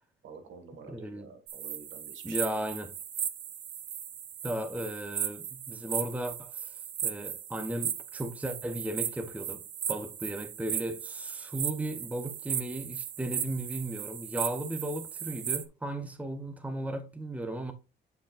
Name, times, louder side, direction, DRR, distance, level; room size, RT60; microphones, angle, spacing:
voice 1, 0.2-2.7, right 4 dB, 75° right, 1.9 m, -49 dB
voice 2, 0.9-1.3 2.2-2.9 4.4-6.7 7.0-9.6 9.9-17.7, right 1 dB, 5° right, 1.0 m, -35 dB
sound 1, 1.5-15.6, right 9 dB, 60° right, 0.8 m, -37 dB
9.1 x 5.2 x 2.5 m
cardioid pair, 90°, 20 cm